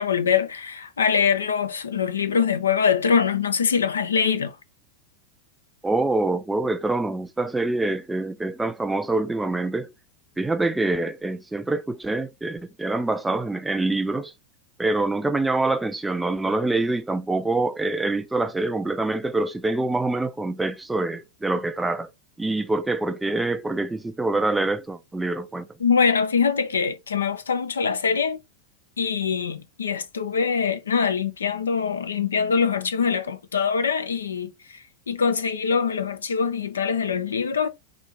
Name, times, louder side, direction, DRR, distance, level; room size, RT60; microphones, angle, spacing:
voice 1, 0.0-4.6 25.8-28.4 29.0-37.7, left 6 dB, 70° left, 0.6 m, -23 dB
voice 2, 5.8-9.9 10.4-14.3 14.8-22.1 22.4-25.7, right 2 dB, 5° right, 0.4 m, -25 dB
4.2 x 2.8 x 3.7 m
figure-of-eight pair, 90°, 0 cm